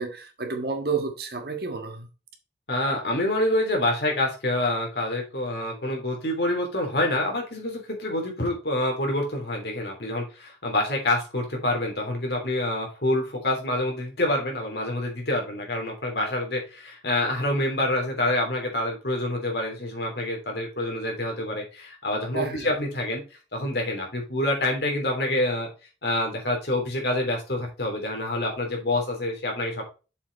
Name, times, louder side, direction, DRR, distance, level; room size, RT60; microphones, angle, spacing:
voice 1, 0.0-2.1 22.3-22.7, right 4 dB, 55° right, 1.6 m, -30 dB
voice 2, 2.7-23.2 23.5-25.7 26.0-29.9, left 1 dB, 65° left, 3.2 m, -27 dB
6.9 x 5.9 x 4.0 m
head